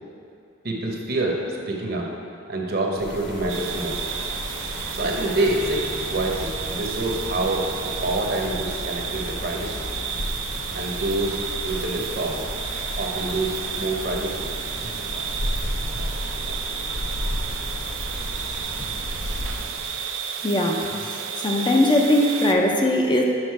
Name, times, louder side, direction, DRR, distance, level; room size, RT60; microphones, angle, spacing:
voice 1, 0.6-2.1 2.5-4.0 4.7-5.8 6.1-7.7 8.0-9.8 10.7-12.4 13.0-14.5 14.8-14.9 15.9-16.0, right 2 dB, 55° right, 0 dB, 0.9 m, -27 dB
sound 1, 3.0-19.9, left 1 dB, 65° left, 0.9 m, -33 dB
sound 2, 3.5-22.5, right 7 dB, 90° right, 0.5 m, -32 dB
voice 2, 20.4-23.2, left 1 dB, 25° left, 1 dB, 0.5 m, -20 dB
6.5 x 5.0 x 4.6 m, 2.5 s
head